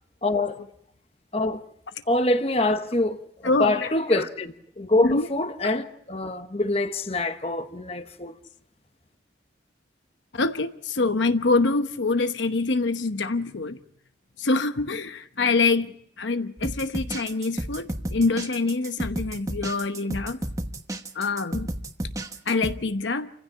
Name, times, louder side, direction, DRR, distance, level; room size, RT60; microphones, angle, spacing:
voice 1, 0.2-0.6 1.3-1.6 2.1-8.3, left 2 dB, 30° left, 1.0 m, -25 dB
voice 2, 3.4-3.9 4.1-4.2 5.0-5.3 10.3-13.8 14.4-15.9 16.2-20.4 21.2-21.7 22.5-23.3, left 3 dB, 75° left, 1.0 m, -25 dB
sound 1, 16.6-22.8, right 1 dB, 15° right, 1.2 m, -32 dB
28.0 x 15.5 x 8.6 m
head